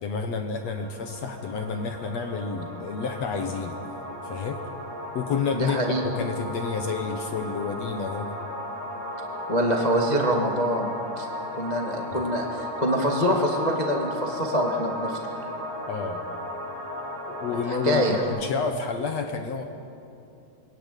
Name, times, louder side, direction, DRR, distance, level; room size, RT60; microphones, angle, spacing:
voice 1, 0.0-3.8 4.2-4.6 5.1-8.3 12.1-12.3 15.9-16.2 17.3-19.6, left 5 dB, 65° left, 5 dB, 1.6 m, -30 dB
sound 1, 0.6-18.2, left 1 dB, 85° right, 7.9 m, -35 dB
voice 2, 5.5-6.0 9.5-10.9 11.2-11.3 11.5-15.2 17.7-18.2, equal, 85° left, 1 dB, 0.3 m, -25 dB
27.5 x 22.0 x 8.4 m, 2.6 s
omnidirectional pair, 4.9 m